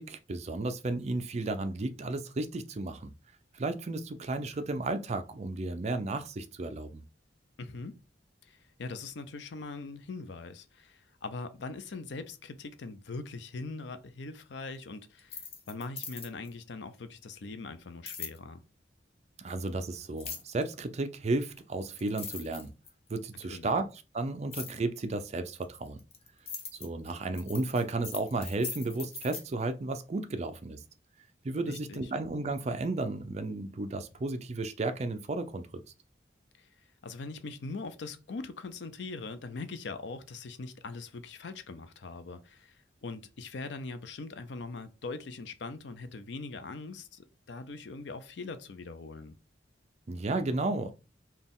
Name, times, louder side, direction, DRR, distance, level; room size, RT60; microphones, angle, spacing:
voice 1, 0.0-3.1 3.5-7.0 19.4-22.7 23.1-23.9 24.1-26.0 26.8-30.8 31.4-35.6 50.1-50.9, right 2 dB, 40° right, 0.5 m, -33 dB
voice 2, 7.6-8.0 8.4-18.6 23.5-23.7 31.7-32.1 36.6-36.7 37.0-49.4, left 3 dB, 70° left, 0.5 m, -41 dB
sound 1, 15.2-16.5 18.1-18.4 20.2-20.6 21.6-21.7 22.0-23.1 24.5-24.8 25.6-29.4, left 5 dB, 35° left, 0.7 m, -41 dB
4.1 x 2.3 x 3.6 m
head